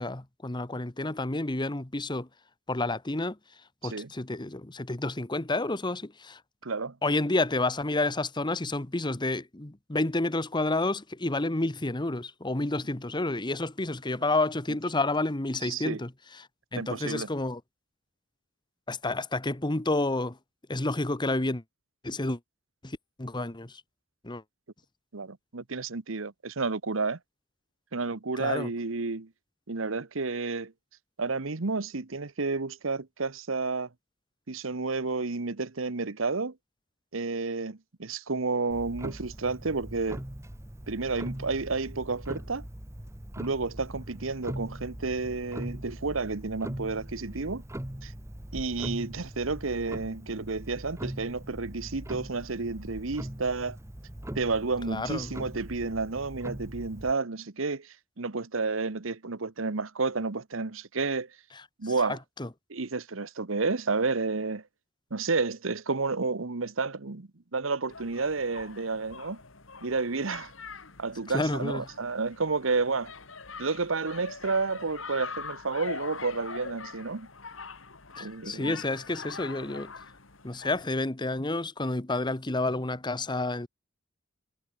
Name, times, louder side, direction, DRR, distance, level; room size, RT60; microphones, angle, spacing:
voice 1, 0.0-2.3 2.7-3.4 3.8-6.4 7.0-17.6 18.9-20.4 20.7-21.6 22.0-22.4 22.8-23.8 24.2-24.4 28.4-28.7 54.9-55.3 61.8-62.5 71.3-71.8 78.2-79.9 80.4-83.7, left 2 dB, 25° left, 1.2 m, -30 dB
voice 2, 6.6-6.9 15.6-16.0 16.8-17.3 25.1-27.2 27.9-29.3 29.7-30.7 31.2-33.9 34.5-36.5 37.1-40.2 40.9-42.6 43.4-47.6 48.0-48.1 48.5-53.8 54.3-61.3 61.8-62.2 62.7-64.6 65.1-69.4 69.8-70.5 71.0-73.1 73.6-77.3 78.2-78.8, right 4 dB, 90° right, 1.2 m, -31 dB
Clock, 38.7-57.1, right 1 dB, 15° right, 1.1 m, -41 dB
sound 1, 67.9-80.9, left 5 dB, 80° left, 3.1 m, -43 dB
head